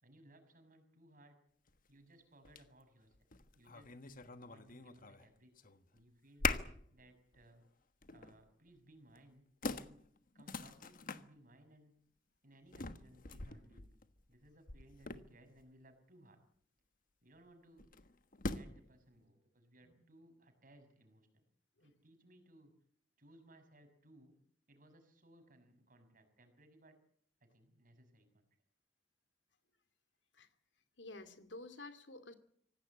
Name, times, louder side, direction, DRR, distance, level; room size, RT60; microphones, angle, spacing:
voice 1, 0.0-1.4 1.9-3.2 3.5-3.9 4.4-5.5 5.9-6.5 6.9-7.7 8.1-9.5 9.7-10.0 10.3-11.9 12.4-14.0 14.3-16.4 17.2-17.9 18.4-21.4 21.8-22.7 23.2-24.4 24.7-27.0 27.4-28.4, right 1 dB, 50° right, 8 dB, 6.1 m, -63 dB
sound 1, 1.7-1.8 2.4-2.7 3.1-5.3 5.6-6.0 6.4-6.9 7.3-7.5 8.0-8.4 9.2-9.3 9.6-11.2 12.7-15.6 17.8-18.9, left 4 dB, 50° left, 1.3 m, -42 dB
voice 2, 31.0-32.3, left 2 dB, 85° left, 10 dB, 2.5 m, -51 dB
25.5 x 17.5 x 8.6 m, 0.65 s
head